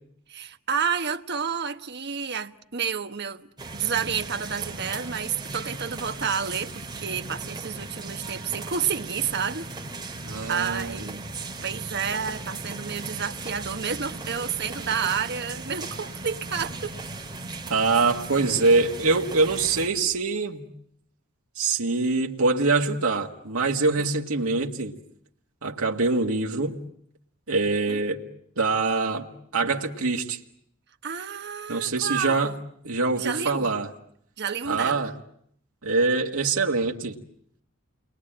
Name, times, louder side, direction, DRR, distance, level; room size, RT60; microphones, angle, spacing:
voice 1, 0.3-9.7 10.5-11.2 11.6-17.0 24.0-24.1 27.9-28.0 31.0-32.6 33.2-33.7 34.4-35.1, right 7 dB, 50° right, 1.2 m, -30 dB
sound 1, 3.6-19.9, right 2 dB, 20° right, 3.8 m, -37 dB
voice 2, 10.3-11.0 17.7-20.7 21.6-24.9 25.6-26.8 27.5-28.2 28.6-30.4 31.7-32.5 32.8-33.9 34.7-35.1 35.8-37.2, right 3 dB, 75° right, 1.9 m, -24 dB
29.5 x 22.5 x 8.9 m
head